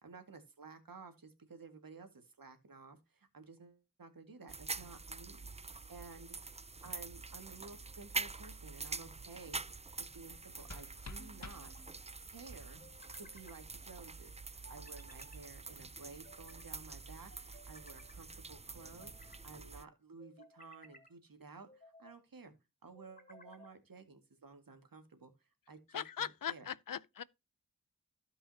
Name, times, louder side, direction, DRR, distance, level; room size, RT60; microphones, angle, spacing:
voice 1, 0.0-6.4 6.8-11.7 12.2-12.8 13.2-22.5 22.8-25.3 25.7-26.7, right 4 dB, 85° right, 2.1 m, -54 dB
sound 1, 4.5-19.8, right 3 dB, 20° right, 0.4 m, -46 dB
sound 2, 9.1-9.8 11.2-11.9 12.8-13.6 14.6-15.4 16.0-16.7 17.3-18.2 18.8-19.5 20.2-21.1 21.7-22.2 23.0-23.8, equal, 25° left, 2.3 m, -60 dB
sound 3, 10.3-12.3, left 3 dB, 50° left, 1.8 m, -52 dB
voice 2, 25.9-27.2, left 8 dB, 75° left, 0.6 m, -40 dB
15.5 x 5.5 x 2.8 m
cardioid pair, 40°, 33 cm